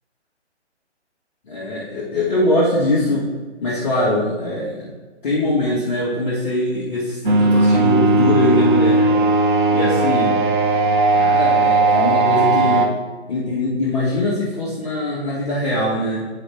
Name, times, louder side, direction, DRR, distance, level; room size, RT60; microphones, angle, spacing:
voice 1, 1.5-3.3 3.6-4.9 5.2-9.1 9.7-10.4 11.1-12.9 13.3-16.3, left 1 dB, ahead, -16 dB, 0.4 m, -22 dB
sound 1, 7.2-12.9, right 2 dB, 45° right, 0.7 m, -16 dB
8.1 x 4.7 x 3.4 m, 1.3 s
figure-of-eight pair, 140°, 35 cm